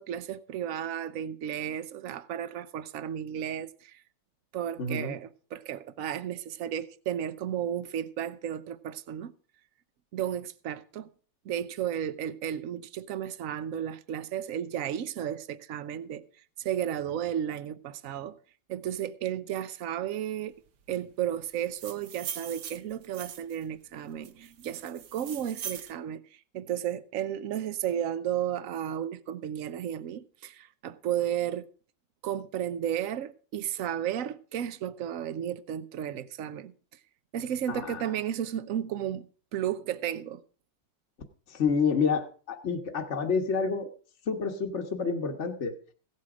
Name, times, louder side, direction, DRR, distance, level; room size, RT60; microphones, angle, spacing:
voice 1, 0.0-4.0 4.5-9.3 10.1-11.1 11.4-16.2 16.6-18.4 18.7-20.5 20.9-26.2 26.5-31.7 32.2-36.7 37.3-40.4, right 10 dB, 60° right, 1.0 m, -33 dB
voice 2, 4.8-5.2 37.7-38.0 41.5-43.9 44.3-45.7, left 5 dB, 45° left, 1.4 m, -28 dB
sound 1, 21.6-23.6 24.2-25.9, right 8 dB, 85° right, 1.8 m, -41 dB
16.5 x 8.6 x 4.9 m
omnidirectional pair, 2.0 m